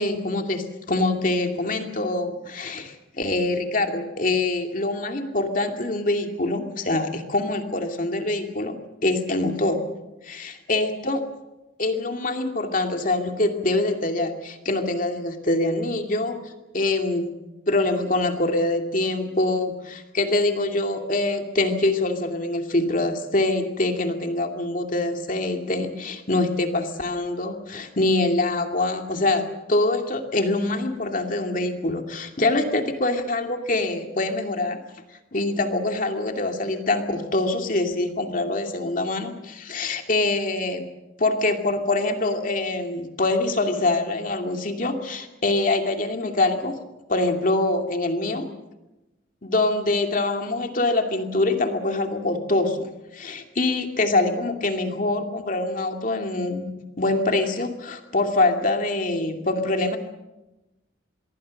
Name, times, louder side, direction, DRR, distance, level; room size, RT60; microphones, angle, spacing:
voice 1, 0.0-8.7 9.0-9.8 10.2-11.2 11.8-17.3 17.7-29.4 29.7-34.8 35.3-40.8 41.2-46.8 47.1-48.5 49.4-60.0, left 2 dB, 45° left, 5 dB, 2.6 m, -24 dB
26.0 x 22.0 x 6.5 m, 0.99 s
head